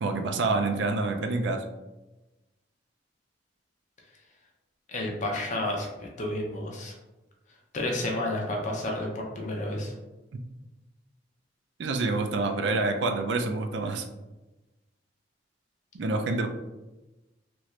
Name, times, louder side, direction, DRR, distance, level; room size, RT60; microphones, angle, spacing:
voice 1, 0.0-1.6 11.8-14.1 15.9-16.5, right 3 dB, 70° right, 5 dB, 0.4 m, -27 dB
voice 2, 4.9-6.9 7.7-9.9, left 1 dB, 45° left, 0 dB, 0.6 m, -31 dB
3.0 x 2.5 x 3.1 m, 1.1 s
head